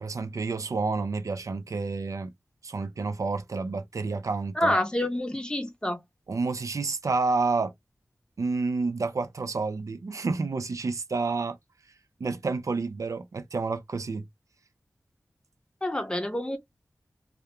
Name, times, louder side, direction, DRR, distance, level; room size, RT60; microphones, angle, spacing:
voice 1, 0.0-2.3 2.6-4.7 6.3-7.7 8.4-11.6 12.2-14.2, right 3 dB, 70° right, 0.4 m, -29 dB
voice 2, 4.6-6.0 15.8-16.6, left 1 dB, 15° left, 0.6 m, -27 dB
2.3 x 2.1 x 2.8 m
wide cardioid pair, 85°, 6 cm